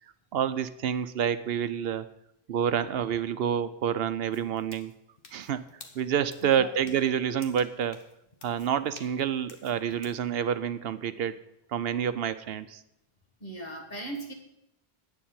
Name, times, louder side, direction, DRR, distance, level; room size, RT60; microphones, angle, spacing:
voice 1, 0.3-2.1 2.5-4.9 5.3-5.6 5.9-8.0 8.4-11.3 11.7-12.8, right 8 dB, 75° right, 13 dB, 0.8 m, -28 dB
sound 1, 4.3-10.2, left 4 dB, 60° left, 1.4 m, -53 dB
voice 2, 13.4-14.3, right 1 dB, 45° left, 2 dB, 2.0 m, -38 dB
9.0 x 7.1 x 9.0 m, 0.83 s
omnidirectional pair, 1.1 m